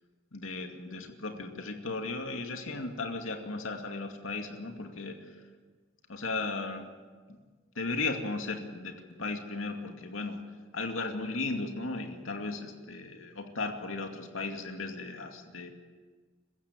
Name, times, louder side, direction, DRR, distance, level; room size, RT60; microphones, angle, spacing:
voice 1, 0.3-5.2 6.1-6.9 7.3-7.4 7.8-10.4 10.7-15.7, left 3 dB, 90° left, 4 dB, 2.4 m, -36 dB
23.5 x 15.0 x 9.2 m, 1.5 s
head